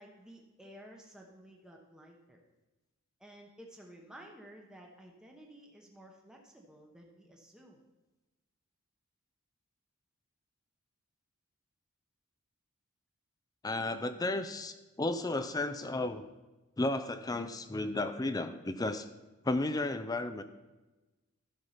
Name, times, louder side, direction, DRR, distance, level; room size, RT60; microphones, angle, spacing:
voice 1, 0.0-2.4 3.2-7.8, right 1 dB, 5° right, 0 dB, 0.9 m, -54 dB
voice 2, 13.6-16.2 16.8-19.1 19.4-20.4, left 2 dB, 15° left, 10 dB, 0.4 m, -33 dB
12.0 x 5.5 x 5.6 m, 1.1 s
head